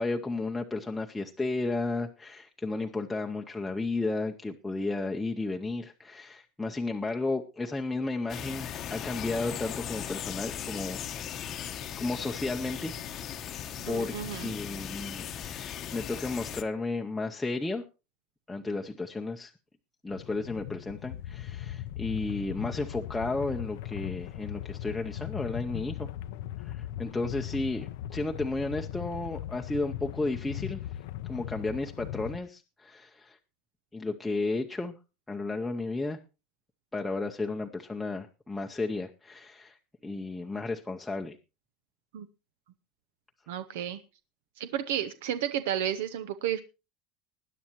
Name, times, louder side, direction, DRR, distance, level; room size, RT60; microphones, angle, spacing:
voice 1, 0.0-11.0 11.5-12.9 13.9-17.8 18.5-19.5 20.0-26.1 26.6-30.8 31.3-33.4 33.9-34.9 35.3-36.2 36.9-39.8 40.0-41.4, left 3 dB, 5° left, 1 dB, 0.7 m, -33 dB
sound 1, 8.3-16.6, left 9 dB, 35° left, 0.9 m, -38 dB
voice 2, 13.9-14.5 42.1-42.3 43.5-44.0 44.6-46.6, right 10 dB, 85° right, 11 dB, 0.8 m, -32 dB
sound 2, 20.1-32.4, left 12 dB, 75° left, 0.6 m, -39 dB
20.0 x 10.0 x 3.0 m, 0.29 s
cardioid pair, 165°, 0 cm